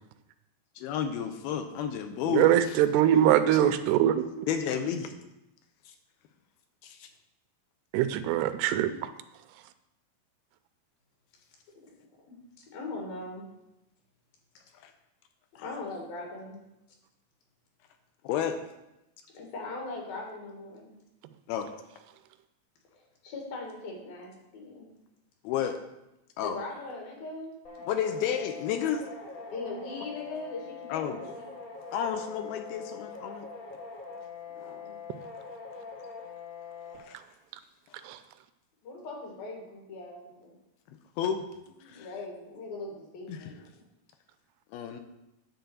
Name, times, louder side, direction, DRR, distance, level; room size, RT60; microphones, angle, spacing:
voice 1, 0.8-2.8 3.6-3.8 4.5-5.1 5.9-6.0 6.8-7.1 14.8-14.9 15.6-15.7 18.2-18.6 21.5-21.7 25.4-25.8 26.4-26.6 27.9-29.0 30.9-31.2 31.9-33.5 37.0-37.2 41.2-41.5 41.9-42.1 43.3-43.5 44.7-45.0, left 8 dB, 80° left, 6 dB, 2.4 m, -31 dB
voice 2, 2.2-4.5 7.9-9.1 38.1-38.2, right 11 dB, 90° right, 11 dB, 2.7 m, -23 dB
voice 3, 12.0-13.5 15.6-16.6 19.3-20.9 22.9-24.9 26.4-27.6 29.5-31.5 34.5-35.0 36.8-37.0 38.8-40.6 41.7-43.8, left 2 dB, 65° left, 0 dB, 3.4 m, -40 dB
sound 1, 27.6-37.0, left 5 dB, 40° left, 1.2 m, -43 dB
10.0 x 4.0 x 6.9 m, 0.91 s
omnidirectional pair, 4.6 m